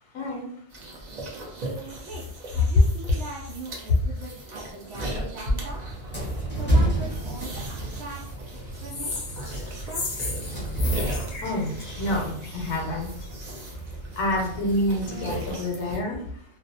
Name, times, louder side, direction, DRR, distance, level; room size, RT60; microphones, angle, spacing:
voice 1, 0.1-0.5 0.7-0.8 11.4-13.3 14.1-16.4, left 1 dB, 85° left, 0 dB, 0.9 m, -28 dB
sound 1, 0.7-16.0, right 1 dB, 50° right, 0.6 m, -38 dB
voice 2, 1.5-5.8 6.5-8.2 8.8-9.2 9.7-10.2, right 2 dB, 80° right, -4 dB, 0.9 m, -41 dB
sound 2, 5.5-15.6, right 1 dB, 10° left, 0.7 m, -31 dB
sound 3, 8.9-12.7, left 3 dB, 55° left, 0.6 m, -35 dB
2.4 x 2.0 x 2.7 m, 0.66 s
omnidirectional pair, 1.2 m